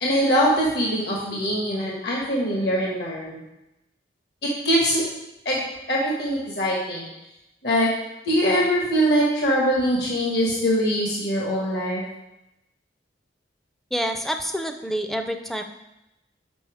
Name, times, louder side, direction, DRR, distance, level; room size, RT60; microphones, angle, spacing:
voice 1, 0.0-3.4 4.6-5.0 5.4-7.1 7.6-7.9 8.2-12.0, equal, 65° left, -4 dB, 1.3 m, -22 dB
voice 2, 13.9-15.6, equal, ahead, 6 dB, 0.4 m, -27 dB
6.9 x 5.1 x 4.8 m, 0.92 s
head